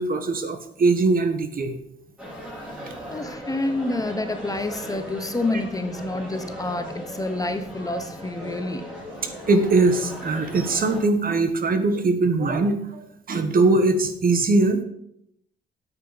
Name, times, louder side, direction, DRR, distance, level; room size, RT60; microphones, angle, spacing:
voice 1, 0.0-1.8 9.2-14.8, right 3 dB, 45° right, 8 dB, 1.4 m, -21 dB
sound 1, 2.2-11.0, equal, 5° right, 4.2 m, -37 dB
voice 2, 3.1-8.8, left 2 dB, 15° left, 8 dB, 1.1 m, -28 dB
9.0 x 8.1 x 5.1 m, 0.75 s
cardioid pair, 90°, 20 cm